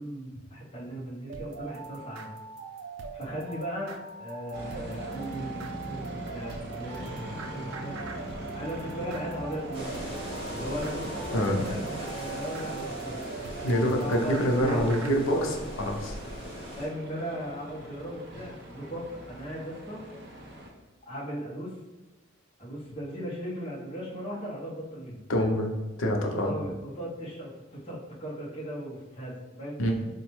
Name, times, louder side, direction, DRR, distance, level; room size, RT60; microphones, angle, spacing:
voice 1, 0.0-2.3 3.1-8.0 8.2-9.9 10.5-13.2 14.0-16.1 16.7-20.1 21.0-21.8 22.6-25.2 26.2-29.8, equal, 30° left, -7 dB, 0.8 m, -37 dB
sound 1, 1.3-15.1, right 5 dB, 90° right, 0.3 m, -42 dB
sound 2, 4.5-20.7, equal, 55° right, 0.7 m, -42 dB
sound 3, 9.7-16.9, equal, 30° right, 1.3 m, -39 dB
voice 2, 11.3-11.7 13.6-16.1 25.3-25.7 26.0-26.5 29.8-29.9, equal, 85° left, 2 dB, 0.6 m, -26 dB
4.0 x 2.2 x 3.0 m, 1.1 s
head